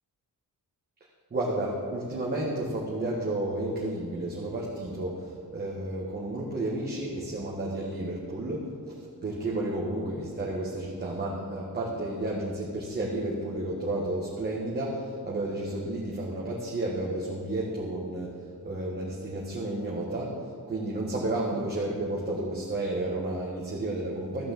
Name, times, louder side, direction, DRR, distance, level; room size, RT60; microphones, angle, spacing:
voice 1, 1.3-8.9 9.2-18.3 18.6-24.5, right 1 dB, 30° right, -4 dB, 1.6 m, -32 dB
14.0 x 6.3 x 7.6 m, 2.1 s
wide cardioid pair, 155°, 34 cm